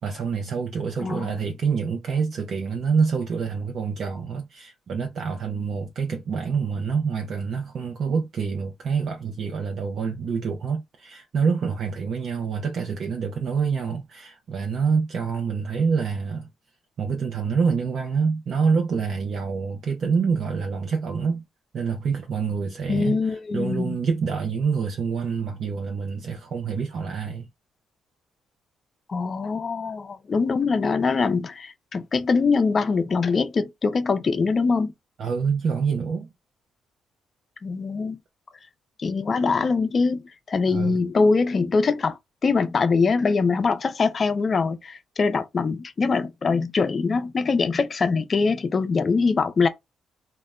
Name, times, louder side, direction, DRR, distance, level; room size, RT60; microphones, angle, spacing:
voice 1, 0.0-16.5 17.0-21.4 21.7-27.5 35.2-36.3 40.7-41.0, right 5 dB, 60° right, 0.5 m, -26 dB
voice 2, 1.0-1.4 22.9-24.0 29.1-34.9 37.6-38.2 39.0-42.2 42.4-49.7, left 4 dB, 40° left, 0.4 m, -23 dB
2.1 x 2.0 x 3.5 m
cardioid pair, 90°, 0 cm